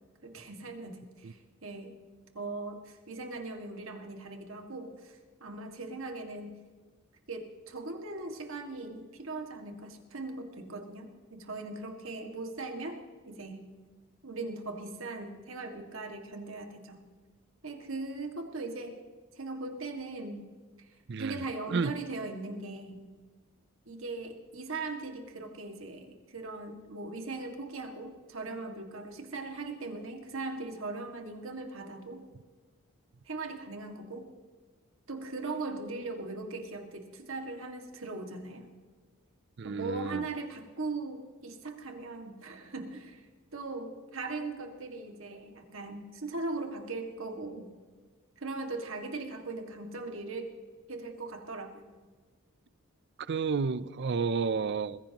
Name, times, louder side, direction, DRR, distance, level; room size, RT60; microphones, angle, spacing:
voice 1, 0.2-2.0 2.3-6.5 7.3-13.0 13.3-13.7 14.2-17.0 17.6-19.0 19.4-20.5 21.2-23.0 23.9-32.3 33.3-34.3 35.1-38.7 39.6-43.3 43.5-47.7 48.4-50.5 50.9-52.0, right 3 dB, 70° right, 2.0 m, -39 dB
voice 2, 39.6-40.2 53.3-55.0, right 5 dB, 50° right, 0.4 m, -31 dB
21.0 x 15.5 x 3.0 m
head